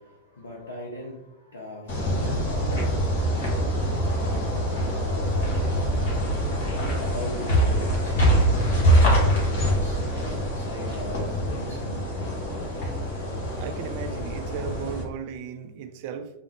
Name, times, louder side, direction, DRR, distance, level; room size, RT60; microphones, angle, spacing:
voice 1, 0.0-6.4 6.7-10.2 10.5-12.1, left 1 dB, 70° left, 0.5 m, -40 dB
sound 1, 1.9-15.0, equal, 50° left, 1.1 m, -24 dB
voice 2, 13.6-16.3, right 7 dB, 45° right, 0.3 m, -36 dB
3.4 x 2.1 x 3.1 m
figure-of-eight pair, 90°, 0 cm